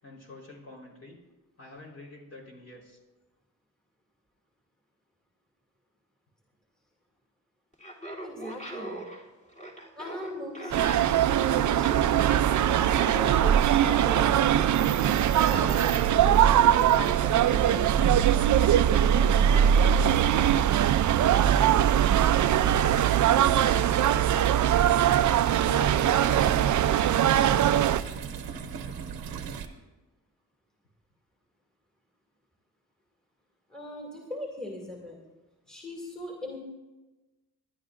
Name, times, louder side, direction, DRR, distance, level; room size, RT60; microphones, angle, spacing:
voice 1, 0.0-1.2 1.6-3.0 23.4-25.2 25.5-27.6, left 2 dB, 40° left, -3 dB, 4.0 m, -46 dB
Laughter, 7.7-16.1, right 1 dB, 20° left, 2.9 m, -41 dB
voice 2, 8.2-9.0 10.0-12.3 12.7-14.5 15.2-20.0 33.7-35.2 35.7-36.6, left 1 dB, ahead, -2 dB, 2.3 m, -40 dB
sound 1, 10.7-28.0, right 10 dB, 55° right, 0.5 m, -22 dB
sound 2, 22.6-29.7, right 6 dB, 85° right, 0.9 m, -37 dB
21.0 x 11.0 x 2.5 m, 1.1 s
cardioid pair, 65°, 35 cm